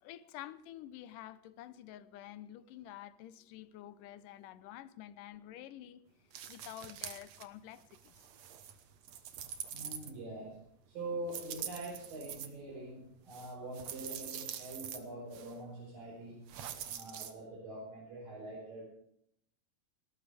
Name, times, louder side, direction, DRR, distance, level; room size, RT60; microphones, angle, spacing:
voice 1, 0.0-6.0 6.5-8.1, left 12 dB, 80° left, 2.3 m, -49 dB
sound 1, 6.3-7.4 7.8-10.5 11.3-12.5 13.3-15.0 15.3-15.5 16.5-17.3, right 9 dB, 60° right, 2.1 m, -45 dB
voice 2, 9.7-10.6 10.9-16.4 16.8-18.9, right 2 dB, 80° right, 6.7 m, -44 dB
20.5 x 19.0 x 3.5 m
omnidirectional pair, 3.9 m